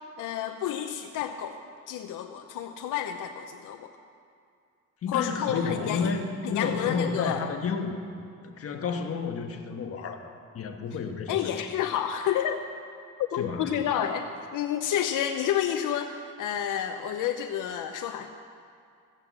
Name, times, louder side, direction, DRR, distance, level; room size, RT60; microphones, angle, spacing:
voice 1, 0.2-3.9 5.1-6.1 6.4-7.4 10.9-11.0 11.3-12.7 13.2-18.3, left 9 dB, 80° left, 6 dB, 0.7 m, -30 dB
voice 2, 5.0-6.2 6.5-8.0 8.4-11.5 13.3-13.7, left 5 dB, 50° left, 4 dB, 1.3 m, -31 dB
15.0 x 8.7 x 7.2 m, 2.4 s
cardioid pair, 130°, 31 cm